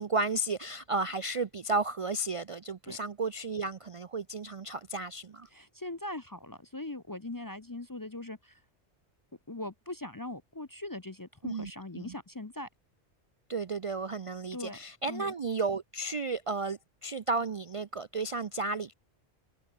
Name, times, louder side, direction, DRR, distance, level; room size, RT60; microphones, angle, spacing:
voice 1, 0.0-5.5 11.4-11.7 12.0-12.1 13.5-18.9, right 3 dB, 45° right, 0.5 m, -33 dB
voice 2, 5.5-8.6 9.5-12.7 14.5-14.8 15.1-15.3, left 2 dB, 25° left, 0.6 m, -40 dB
omnidirectional pair, 1.1 m